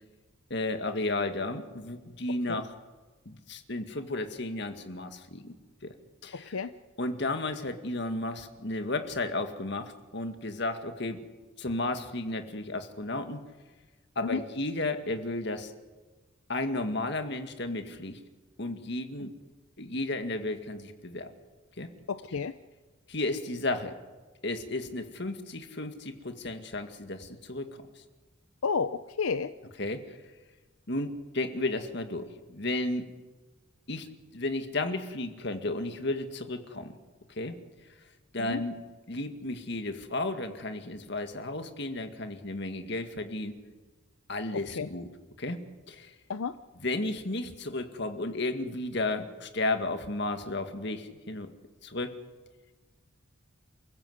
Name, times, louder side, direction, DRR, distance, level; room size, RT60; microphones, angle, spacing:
voice 1, 0.5-2.7 3.3-5.5 5.8-5.9 6.2-6.6 7.0-11.2 11.6-13.4 14.2-15.7 16.5-18.2 18.6-19.3 19.8-21.3 21.8-21.9 23.1-24.0 24.4-27.8 29.8-30.2 30.9-33.1 33.9-34.1 34.3-36.9 37.4-37.6 38.3-38.8 39.1-43.6 44.3-45.1 45.4-45.6 45.9-46.1 46.8-51.5 51.8-52.1, left 2 dB, 55° left, 7 dB, 2.0 m, -33 dB
voice 2, 6.3-6.7 14.2-14.4 22.1-22.5 28.6-29.5 38.4-38.6 44.5-44.9 46.3-46.6, left 5 dB, 80° left, 12 dB, 0.7 m, -31 dB
29.0 x 16.0 x 8.0 m, 1.3 s
head